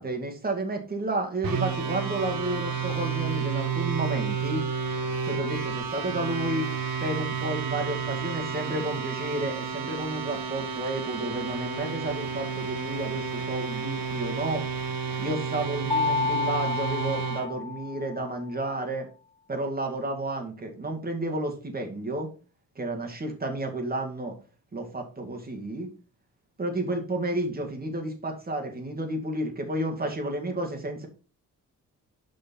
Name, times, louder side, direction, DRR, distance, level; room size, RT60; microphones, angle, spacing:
voice 1, 0.0-4.6 5.2-6.7 7.0-14.6 15.2-19.1 19.5-22.3 22.8-24.4 24.7-25.9 26.6-31.1, right 1 dB, 25° right, 2 dB, 2.1 m, -31 dB
sound 1, 1.4-17.5, right 6 dB, 80° right, 1.8 m, -31 dB
Mallet percussion, 15.9-18.4, left 5 dB, 15° left, 0.4 m, -30 dB
6.5 x 5.5 x 4.4 m, 0.35 s
cardioid pair, 120°, 34 cm